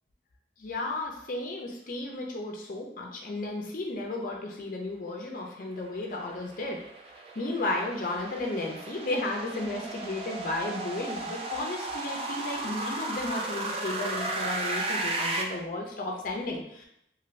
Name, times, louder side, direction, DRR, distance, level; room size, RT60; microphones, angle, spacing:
voice 1, 0.6-6.8 7.4-16.9, left 2 dB, 50° left, 0 dB, 0.5 m, -33 dB
sound 1, 5.9-15.4, right 2 dB, 30° right, 0.3 m, -35 dB
2.6 x 2.5 x 3.1 m, 0.76 s
head